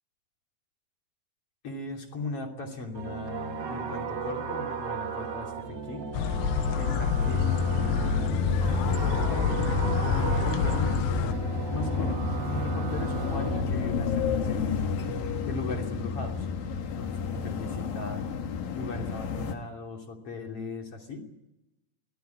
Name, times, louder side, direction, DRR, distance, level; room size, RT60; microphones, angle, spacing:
voice 1, 1.6-6.1 6.7-8.6 10.0-11.1 11.7-12.2 12.5-14.8 15.4-16.5 17.0-18.2 18.7-21.3, left 3 dB, 35° left, 2 dB, 3.3 m, -38 dB
sound 1, 2.9-13.6, right 6 dB, 85° right, 0.9 m, -36 dB
sound 2, 6.1-11.3, left 6 dB, 85° left, 3.7 m, -28 dB
sound 3, 7.3-19.5, left 4 dB, 55° left, 3.1 m, -30 dB
23.5 x 15.0 x 9.7 m, 0.95 s
omnidirectional pair, 5.5 m